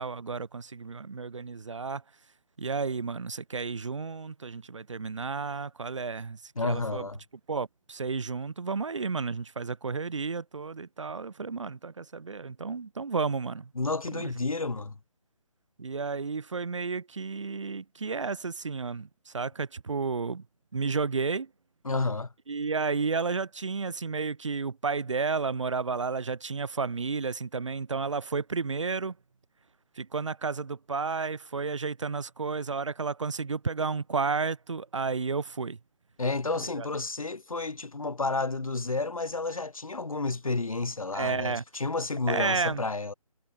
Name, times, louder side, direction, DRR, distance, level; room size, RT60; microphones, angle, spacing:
voice 1, 0.0-2.0 2.6-7.1 7.5-13.7 14.1-14.3 15.8-20.4 20.7-21.5 22.5-29.2 30.0-35.8 36.8-36.9 41.1-41.6 42.3-42.9, right 4 dB, 55° right, 1.2 m, -32 dB
voice 2, 6.6-7.2 13.8-15.0 21.8-22.3 36.2-43.1, left 3 dB, 65° left, 2.1 m, -31 dB
figure-of-eight pair, 150°, 19 cm